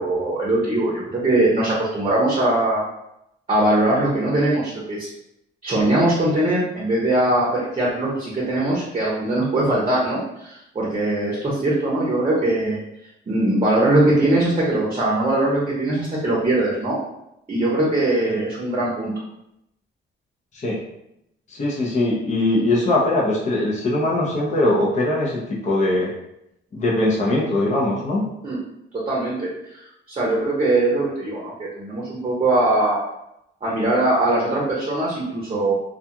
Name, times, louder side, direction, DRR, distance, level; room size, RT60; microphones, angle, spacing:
voice 1, 0.0-2.9 3.5-5.1 5.6-12.8 13.3-17.0 17.5-19.1 28.4-28.6 28.9-33.0 33.6-35.7, right 1 dB, 30° right, -5 dB, 0.8 m, -21 dB
voice 2, 21.5-26.1 26.7-28.2, left 1 dB, 35° left, -4 dB, 0.7 m, -21 dB
2.4 x 2.3 x 2.8 m, 0.81 s
cardioid pair, 90°, 20 cm